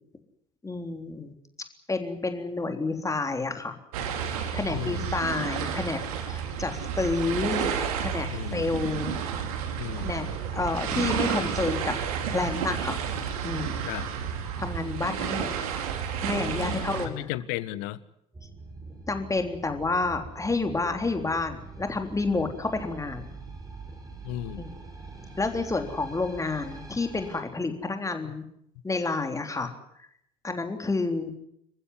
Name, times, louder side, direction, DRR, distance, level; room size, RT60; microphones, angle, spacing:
voice 1, 0.6-1.3 1.9-3.8 4.5-6.0 6.3-7.7 8.0-9.1 10.0-11.9 12.3-13.0 13.4-13.8 14.6-15.5 16.2-17.3 19.1-23.3 24.6-24.7 25.4-28.4 28.8-29.7 30.4-31.3, left 3 dB, 15° left, 6 dB, 3.6 m, -29 dB
sound 1, 3.9-17.1, right 7 dB, 65° right, 2.9 m, -31 dB
voice 2, 4.7-5.2 8.3-8.7 9.8-10.2 13.9-14.1 16.5-18.0 24.2-24.8 28.2-28.3, left 15 dB, 60° left, 18 dB, 1.2 m, -35 dB
sound 2, 18.3-27.4, right 3 dB, 20° right, 6.6 m, -44 dB
27.0 x 15.0 x 9.6 m, 0.73 s
figure-of-eight pair, 60°, 19 cm